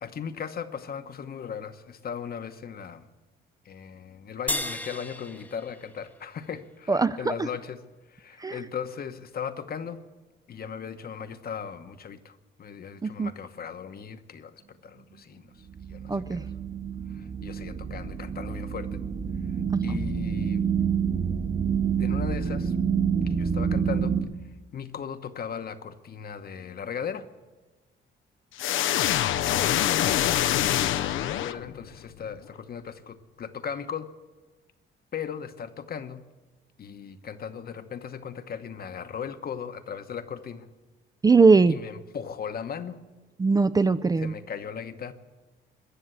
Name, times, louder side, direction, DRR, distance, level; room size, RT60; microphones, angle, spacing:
voice 1, 0.0-3.1 3.6-7.8 8.1-10.0 10.5-16.5 17.1-19.0 19.8-20.6 22.0-22.7 23.2-24.1 24.7-27.3 29.0-34.1 35.1-36.2 36.8-40.7 41.7-43.0 44.2-45.1, left 7 dB, 50° left, 9 dB, 1.0 m, -37 dB
sound 1, 4.5-7.1, left 1 dB, 5° left, 0.8 m, -35 dB
voice 2, 6.9-7.3 8.4-8.6 13.0-13.3 16.1-16.4 19.7-20.0 41.2-41.8 43.4-44.3, right 4 dB, 20° right, 13 dB, 0.4 m, -21 dB
sound 2, 15.7-24.2, right 7 dB, 45° right, 1.7 m, -28 dB
sound 3, 28.6-32.0, left 12 dB, 80° left, 0.6 m, -25 dB
21.5 x 7.2 x 8.1 m, 1.2 s
cardioid pair, 90°, 20 cm